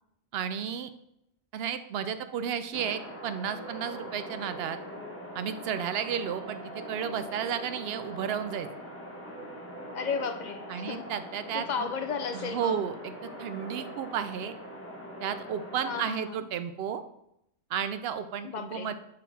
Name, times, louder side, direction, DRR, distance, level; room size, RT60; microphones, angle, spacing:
voice 1, 0.3-0.9 1.5-4.8 5.3-6.6 6.9-8.7 10.7-11.9 12.3-14.5 15.2-17.0 17.7-18.9, right 8 dB, 65° right, 10 dB, 0.7 m, -33 dB
sound 1, 2.7-16.0, equal, 10° left, 1.4 m, -42 dB
voice 2, 9.9-11.1 11.5-12.8 15.8-16.4 18.4-18.9, left 6 dB, 55° left, 7 dB, 0.5 m, -34 dB
7.2 x 3.9 x 4.2 m, 0.79 s
omnidirectional pair, 1.1 m